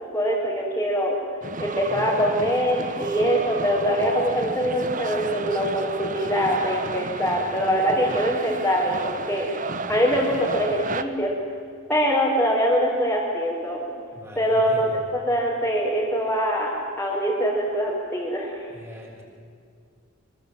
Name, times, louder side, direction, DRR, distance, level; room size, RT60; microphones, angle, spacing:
voice 1, 0.1-1.2 1.6-9.5 9.9-11.3 11.9-13.8 14.3-14.9 15.1-16.7 17.0-18.6, equal, 5° left, -8 dB, 5.1 m, -23 dB
sound 1, 1.4-11.0, right 3 dB, 35° right, 1.3 m, -32 dB
voice 2, 14.1-15.0 18.7-19.2, equal, 10° right, -1 dB, 7.0 m, -40 dB
26.0 x 24.5 x 9.2 m, 2.3 s
head